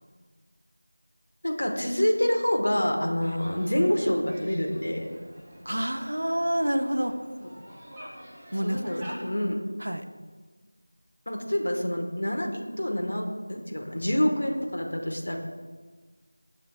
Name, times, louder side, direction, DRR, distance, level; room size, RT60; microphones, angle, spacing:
voice 1, 1.4-5.1 7.4-7.5 8.6-9.6 11.3-15.4, left 1 dB, 60° left, 2 dB, 1.2 m, -27 dB
sound 1, 3.2-9.2, equal, 5° right, 0.9 m, -47 dB
voice 2, 5.7-7.2 8.5-8.8 9.8-10.1, equal, 75° right, 7 dB, 0.6 m, -27 dB
9.5 x 6.7 x 2.2 m, 1.4 s
figure-of-eight pair, 175°, 0 cm